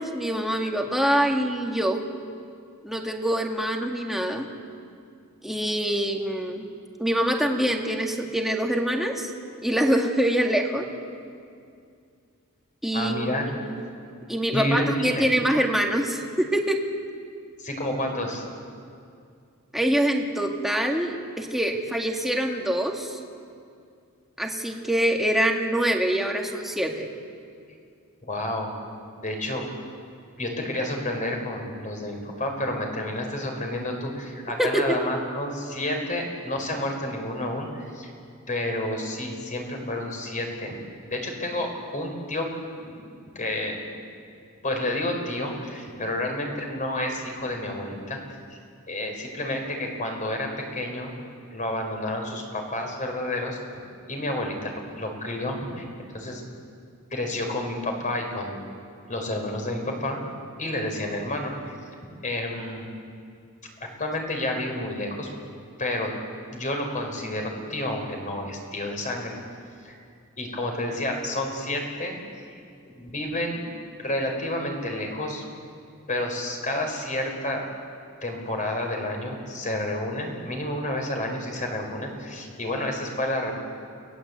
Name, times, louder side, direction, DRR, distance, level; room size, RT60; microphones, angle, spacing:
voice 1, 0.0-2.0 2.8-4.5 5.4-6.6 7.0-9.3 9.6-10.9 12.8-13.2 13.6-13.8 14.3-16.8 19.7-23.2 24.4-27.1 34.6-35.0, right 1 dB, ahead, 1 dB, 2.1 m, -25 dB
voice 2, 12.9-13.4 14.5-15.3 17.6-18.4 28.2-28.7 29.2-29.6 30.4-38.1 38.5-40.8 41.0-42.5 42.8-43.9 44.6-48.2 48.5-48.6 48.9-51.1 51.5-53.6 54.1-56.4 57.1-58.6 59.1-60.2 60.6-61.7 62.2-62.9 64.0-65.3 65.8-66.1 66.5-69.3 69.8-69.9 70.4-72.1 72.8-73.6 74.0-75.4 76.1-77.6 78.2-83.5, left 1 dB, 35° left, 2 dB, 4.9 m, -30 dB
29.5 x 19.5 x 8.3 m, 2.3 s
head